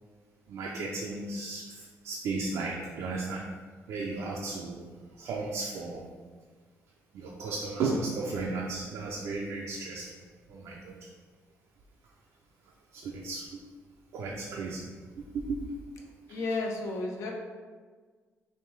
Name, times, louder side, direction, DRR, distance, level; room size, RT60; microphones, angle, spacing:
voice 1, 0.5-3.5 3.9-4.9 5.2-6.1 7.1-10.1 10.5-11.1 12.9-13.6 14.1-14.9 15.2-15.8 16.3-16.4, right 3 dB, 75° right, -2 dB, 0.5 m, -35 dB
voice 2, 16.3-17.3, left 2 dB, 75° left, 0 dB, 0.7 m, -32 dB
3.4 x 2.6 x 4.5 m, 1.5 s
cardioid pair, 115°, 5 cm